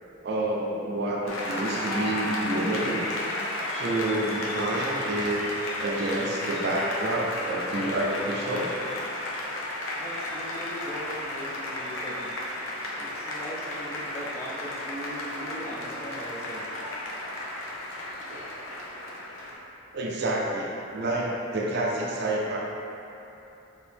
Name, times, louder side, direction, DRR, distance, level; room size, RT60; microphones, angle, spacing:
voice 1, 0.2-3.0 3.7-5.4 5.8-8.7 18.3-18.5 19.9-22.6, right 1 dB, 50° right, -2 dB, 0.4 m, -28 dB
Applause, 1.3-19.5, left 1 dB, 75° left, 0.6 m, -33 dB
voice 2, 10.0-12.3 13.0-16.7, equal, 10° left, -6 dB, 0.5 m, -39 dB
4.4 x 2.9 x 3.4 m, 2.9 s
head